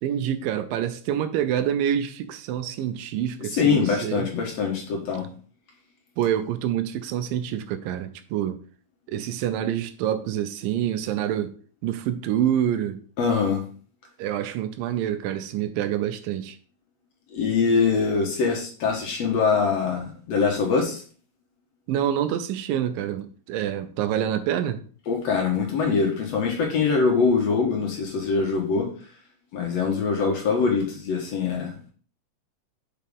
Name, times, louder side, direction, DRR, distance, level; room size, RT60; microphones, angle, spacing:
voice 1, 0.0-4.3 6.2-8.6 9.1-11.5 11.8-13.0 14.2-16.6 21.9-24.8, right 10 dB, 85° right, 2.4 m, -27 dB
voice 2, 3.6-5.3 13.2-13.6 17.3-21.0 25.1-28.9 29.5-31.7, left 5 dB, 60° left, 2.0 m, -23 dB
6.7 x 5.1 x 3.5 m
omnidirectional pair, 3.9 m